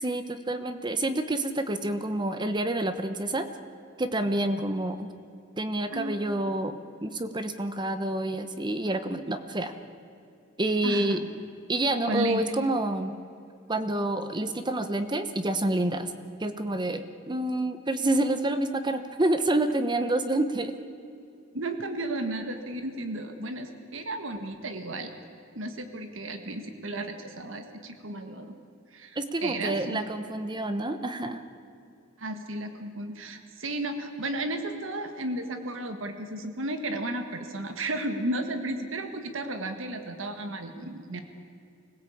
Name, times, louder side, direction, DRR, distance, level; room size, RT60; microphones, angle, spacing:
voice 1, 0.0-3.5 4.0-5.1 5.6-9.7 10.6-11.3 11.7-13.2 13.7-16.1 16.4-20.7 29.2-31.4, right 1 dB, 25° right, 9 dB, 1.0 m, -28 dB
voice 2, 5.9-6.4 10.8-11.3 12.1-12.4 21.5-25.1 25.5-28.5 28.9-30.0 32.2-41.2, right 1 dB, 75° right, 7 dB, 1.6 m, -34 dB
25.0 x 17.0 x 8.6 m, 2.6 s
head